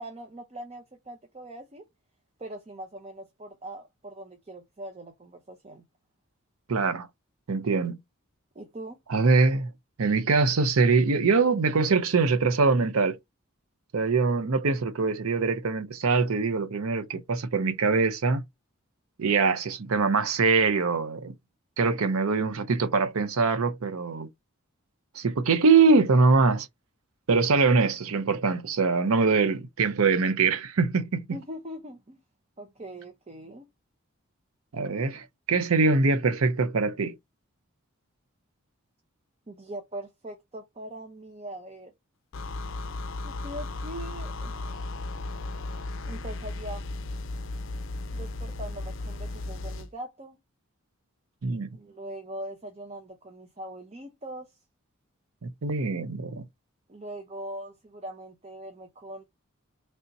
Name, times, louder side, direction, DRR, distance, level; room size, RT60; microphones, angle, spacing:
voice 1, 0.0-1.8 2.4-5.8 8.5-9.0 31.3-32.2 32.6-33.7 39.5-41.9 43.2-44.9 46.0-46.9 48.1-50.4 51.7-54.6 56.9-59.2, right 1 dB, 30° right, 0.6 m, -41 dB
voice 2, 6.7-7.1 7.5-8.0 9.1-9.7 10.0-13.2 13.9-18.4 19.2-21.3 21.8-24.3 25.2-26.7 27.3-31.3 34.7-37.2 51.4-51.7 55.4-56.4, right 4 dB, 85° right, 0.6 m, -23 dB
sound 1, 42.3-49.9, left 2 dB, 60° left, 0.5 m, -35 dB
3.4 x 2.6 x 4.0 m
head